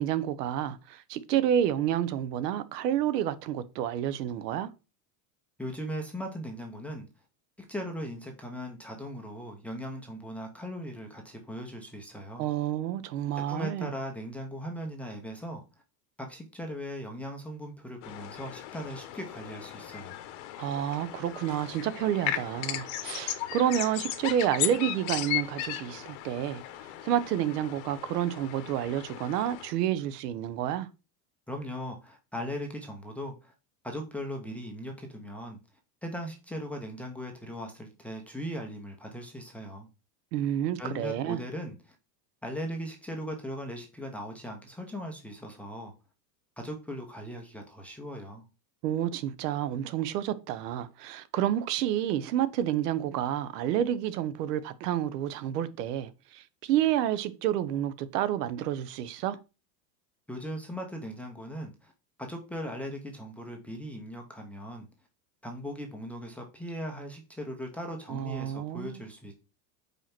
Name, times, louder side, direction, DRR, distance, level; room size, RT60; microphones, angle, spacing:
voice 1, 0.0-4.7 12.4-13.9 20.6-26.6 27.0-30.9 40.3-41.4 48.8-59.4 68.1-69.0, right 11 dB, 80° right, 1.0 m, -29 dB
voice 2, 5.6-7.1 7.7-12.4 13.5-15.6 16.2-20.2 31.5-33.5 33.8-35.6 36.0-39.9 40.8-42.0 42.4-45.9 46.6-48.4 60.3-61.9 62.2-64.9 65.4-69.3, equal, 5° left, 0.5 m, -38 dB
sound 1, 18.0-29.7, left 13 dB, 45° left, 0.9 m, -36 dB
5.5 x 4.5 x 5.8 m
supercardioid pair, 170°, 48 cm